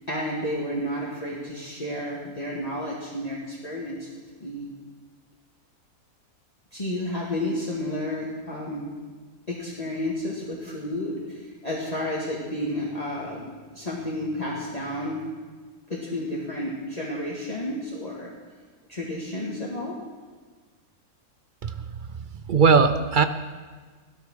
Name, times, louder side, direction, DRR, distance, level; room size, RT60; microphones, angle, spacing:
voice 1, 0.1-4.1 4.4-4.7 6.7-8.8 9.5-15.2 15.9-18.3 18.9-20.0, left 1 dB, 25° left, -5 dB, 2.1 m, -31 dB
voice 2, 22.2-23.3, right 5 dB, 60° right, 11 dB, 0.5 m, -20 dB
16.0 x 12.5 x 6.4 m, 1.5 s
omnidirectional pair, 1.5 m